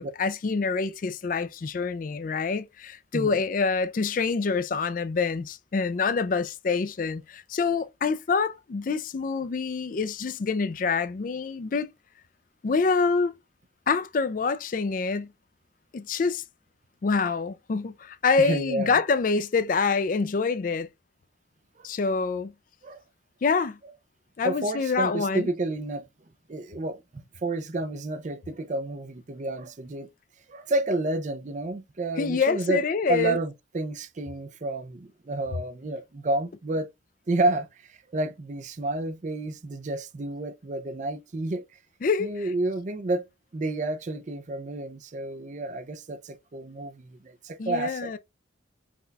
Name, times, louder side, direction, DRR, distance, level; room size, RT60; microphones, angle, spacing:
voice 1, 0.0-11.9 12.6-13.3 13.9-15.3 15.9-16.4 17.0-20.9 21.8-22.5 23.4-23.8 24.4-25.5 32.2-33.4 42.0-42.3 47.6-48.2, left 4 dB, 45° left, 0.4 m, -26 dB
voice 2, 18.4-18.9 21.8-21.9 22.8-23.0 24.4-26.0 26.5-30.1 30.5-32.8 33.1-36.9 37.3-41.6 42.2-43.3 43.5-48.1, right 2 dB, 40° right, 0.5 m, -30 dB
5.9 x 2.2 x 3.9 m
head